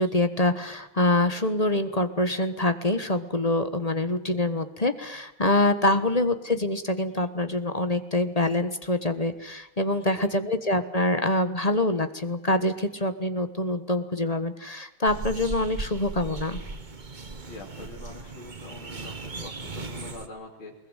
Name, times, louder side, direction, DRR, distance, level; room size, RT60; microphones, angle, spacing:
voice 1, 0.0-16.6, left 1 dB, 25° left, 10 dB, 1.1 m, -25 dB
voice 2, 9.9-10.3 17.4-20.8, left 3 dB, 85° left, -1 dB, 3.8 m, -44 dB
sound 1, 15.1-20.3, right 3 dB, 25° right, 1.3 m, -37 dB
21.5 x 20.5 x 9.0 m, 0.86 s
omnidirectional pair, 2.2 m